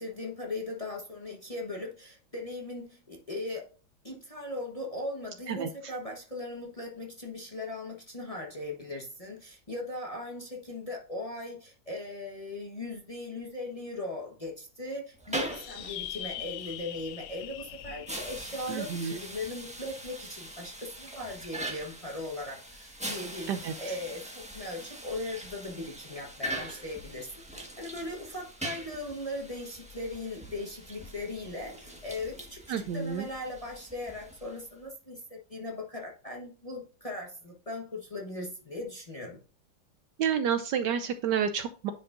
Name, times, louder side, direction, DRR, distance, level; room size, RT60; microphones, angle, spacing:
voice 1, 0.0-3.7 4.0-23.5 23.8-39.4, left 2 dB, 25° left, 0 dB, 1.0 m, -39 dB
sound 1, 15.1-34.8, right 1 dB, 5° right, 1.0 m, -42 dB
sound 2, 15.5-20.3, left 12 dB, 85° left, 1.5 m, -43 dB
voice 2, 18.7-19.2 23.5-24.0 32.7-33.3 40.2-41.9, right 7 dB, 75° right, 9 dB, 1.0 m, -30 dB
9.9 x 5.3 x 2.5 m, 0.37 s
omnidirectional pair, 2.2 m